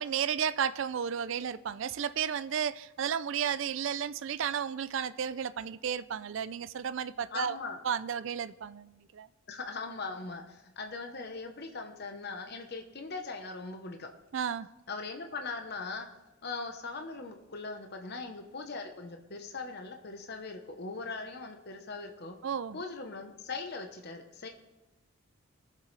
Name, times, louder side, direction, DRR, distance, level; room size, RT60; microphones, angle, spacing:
voice 1, 0.0-7.6 7.8-9.3 14.3-14.7 22.4-22.8, right 8 dB, 60° right, 15 dB, 0.4 m, -33 dB
voice 2, 7.3-7.8 9.5-14.1 14.9-16.1 16.4-22.3 22.7-24.5, left 3 dB, 50° left, 5 dB, 0.9 m, -40 dB
21.5 x 7.5 x 3.3 m, 1.1 s
head